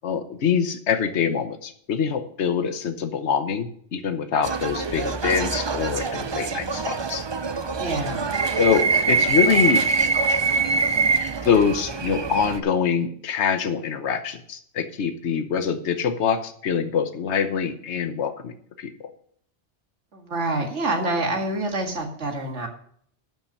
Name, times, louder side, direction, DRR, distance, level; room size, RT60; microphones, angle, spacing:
voice 1, 0.0-7.3 8.6-9.9 11.4-18.9, left 7 dB, 70° left, 9 dB, 1.2 m, -24 dB
sound 1, 4.4-12.6, right 4 dB, 35° right, 0.4 m, -24 dB
voice 2, 7.8-8.2 20.1-22.7, right 2 dB, 80° right, 3 dB, 2.1 m, -26 dB
12.0 x 5.7 x 6.6 m, 0.62 s
omnidirectional pair, 1.2 m